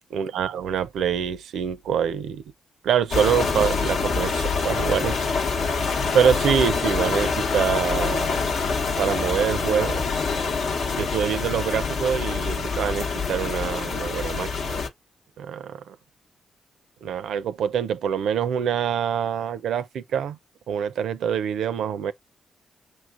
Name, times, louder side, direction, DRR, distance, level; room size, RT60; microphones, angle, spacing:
voice 1, 0.1-2.4 2.8-5.3 6.1-8.4 9.0-10.0 10.9-14.8 15.4-16.0 17.0-20.4 20.7-22.1, right 8 dB, 80° right, 0.4 m, -25 dB
sound 1, 3.1-14.9, left 4 dB, 75° left, 0.9 m, -25 dB
5.7 x 3.1 x 2.4 m
supercardioid pair, 60°, 0 cm